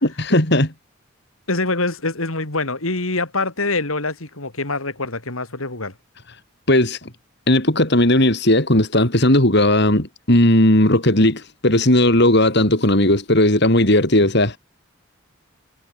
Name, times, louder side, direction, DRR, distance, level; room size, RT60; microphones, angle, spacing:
voice 1, 0.2-0.7 6.7-7.1 7.5-14.6, left 1 dB, 50° left, 3.8 m, -16 dB
voice 2, 1.5-5.9, left 3 dB, 75° left, 4.0 m, -24 dB
head